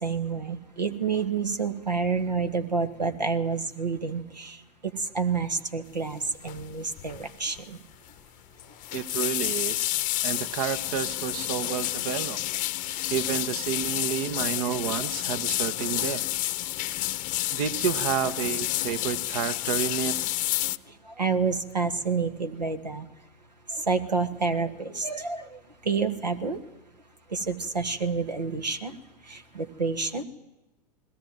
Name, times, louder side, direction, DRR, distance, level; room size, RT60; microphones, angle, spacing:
voice 1, 0.0-4.6 5.1-7.6 21.2-23.1 23.9-25.5 25.9-26.6 27.3-28.9 29.3-30.2, right 4 dB, 90° right, 7 dB, 1.8 m, -28 dB
sound 1, 6.5-6.7 7.0-7.3 7.6-7.7 8.6-20.8, left 17 dB, 40° left, 0.8 m, -30 dB
voice 2, 8.9-10.0 10.2-12.4 12.8-16.3 17.5-20.2, right 9 dB, 60° right, 12 dB, 1.1 m, -30 dB
20.5 x 17.5 x 9.2 m, 0.97 s
figure-of-eight pair, 95°, 21 cm